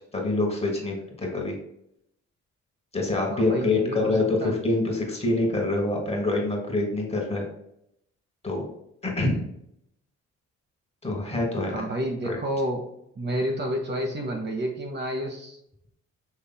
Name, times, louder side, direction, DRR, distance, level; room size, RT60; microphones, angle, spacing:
voice 1, 0.1-1.6 2.9-7.4 8.4-8.7 9.0-9.5 11.0-11.8 12.2-12.4, left 2 dB, 20° left, 0 dB, 1.4 m, -26 dB
voice 2, 3.3-4.5 11.7-12.8 13.2-15.6, right 1 dB, 35° right, 1 dB, 0.8 m, -30 dB
5.6 x 3.1 x 2.2 m, 0.75 s
cardioid pair, 90°, 30 cm